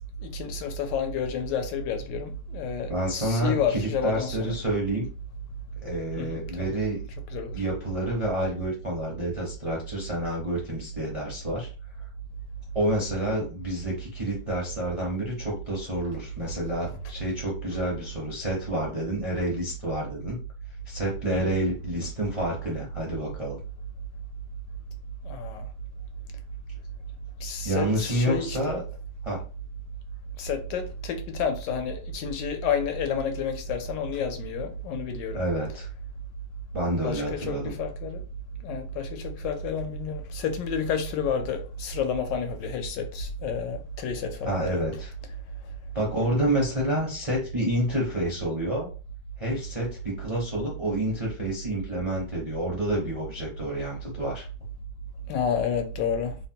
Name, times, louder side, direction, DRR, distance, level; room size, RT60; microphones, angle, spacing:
voice 1, 0.2-4.5 6.2-6.4 7.3-7.6 21.3-21.4 25.2-25.7 27.4-28.8 30.4-35.4 37.0-38.2 38.6-44.8 55.3-56.4, left 5 dB, 80° left, 1.2 m, -30 dB
voice 2, 2.9-5.1 5.8-7.0 7.5-11.7 12.7-20.4 20.9-23.6 27.6-28.8 29.2-29.4 35.3-35.9 36.7-37.7 44.4-45.1 45.9-48.9 49.4-54.5, right 1 dB, 40° right, 0.4 m, -29 dB
3.1 x 2.1 x 2.7 m
omnidirectional pair, 1.9 m